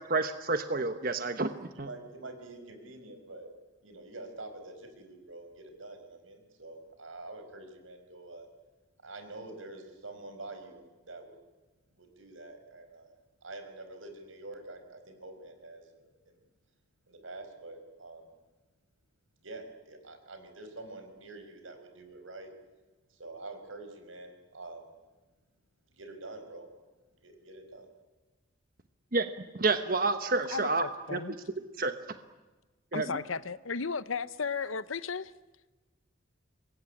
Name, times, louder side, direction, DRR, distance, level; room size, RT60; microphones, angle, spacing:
voice 1, 0.1-1.9 29.1-31.2 31.8-31.9 32.9-33.1, right 3 dB, 45° right, 1.1 m, -29 dB
voice 2, 1.7-3.5 3.8-8.5 9.0-11.4 12.0-13.2 13.4-16.3 17.1-18.3 19.4-22.5 23.1-24.9 25.9-26.7 27.2-27.9, right 2 dB, 85° right, 5.3 m, -46 dB
voice 3, 30.5-31.4 32.9-35.3, left 5 dB, 90° left, 0.9 m, -35 dB
25.5 x 21.5 x 9.8 m
head